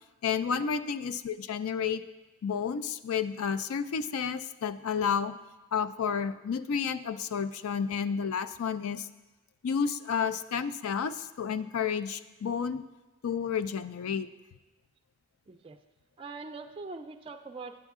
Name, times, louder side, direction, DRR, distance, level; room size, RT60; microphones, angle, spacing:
voice 1, 0.2-2.0 2.4-5.3 5.7-9.1 9.6-12.9 13.2-14.3, left 6 dB, 75° left, 13 dB, 0.4 m, -31 dB
voice 2, 15.5-15.8 16.2-17.8, right 3 dB, 25° right, 5 dB, 0.3 m, -43 dB
9.9 x 8.1 x 3.6 m, 1.1 s
head